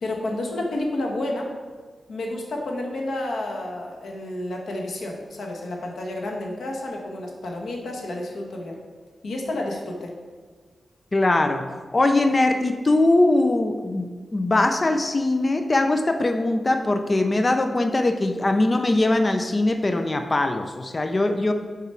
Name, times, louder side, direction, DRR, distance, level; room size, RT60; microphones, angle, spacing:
voice 1, 0.0-1.5 2.1-8.8 9.2-10.1, left 1 dB, 85° left, 0 dB, 1.2 m, -30 dB
voice 2, 11.1-21.5, left 2 dB, 30° left, 6 dB, 0.4 m, -21 dB
6.8 x 4.8 x 4.4 m, 1.5 s
wide cardioid pair, 120°, 0 cm